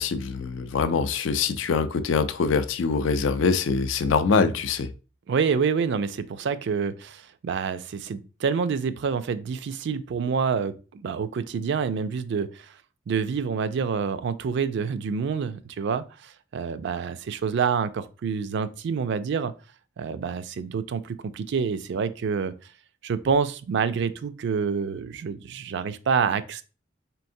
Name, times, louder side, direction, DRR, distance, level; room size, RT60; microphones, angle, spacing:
voice 1, 0.0-4.9, left 5 dB, 75° left, 0.4 m, -24 dB
voice 2, 5.3-12.7 13.1-19.5 20.0-22.6 23.0-26.6, right 6 dB, 65° right, 0.4 m, -27 dB
4.5 x 3.4 x 2.6 m
head